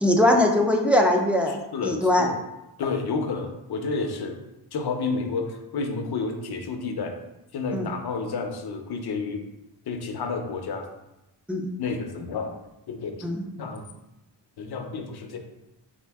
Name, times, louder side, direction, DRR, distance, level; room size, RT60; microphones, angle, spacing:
voice 1, 0.0-2.3 7.7-7.9 11.5-11.7 13.2-13.4, left 1 dB, 5° right, 0 dB, 0.4 m, -21 dB
voice 2, 1.5-2.4 2.8-4.4 4.7-7.1 7.5-9.4 9.8-10.9 11.8-12.6 12.9-13.3 13.6-13.9 14.6-15.4, left 4 dB, 60° left, 5 dB, 0.6 m, -30 dB
4.3 x 2.5 x 3.4 m, 0.93 s
wide cardioid pair, 120°, 44 cm